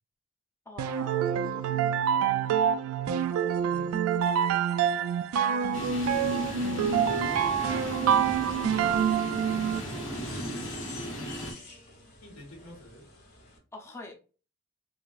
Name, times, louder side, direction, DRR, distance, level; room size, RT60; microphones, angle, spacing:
voice 1, 0.7-1.7 13.7-14.2, left 2 dB, 15° left, 2 dB, 0.5 m, -44 dB
sound 1, 0.8-10.0, right 8 dB, 85° right, 0.3 m, -26 dB
voice 2, 2.1-2.4 3.7-4.0 5.6-6.0 7.0-8.0 10.5-13.1, equal, 90° left, -1 dB, 1.5 m, -51 dB
sound 2, 5.7-11.5, equal, 65° left, 1.4 m, -36 dB
sound 3, 5.9-13.6, left 3 dB, 40° left, 1.5 m, -50 dB
3.9 x 2.5 x 2.3 m, 0.35 s
head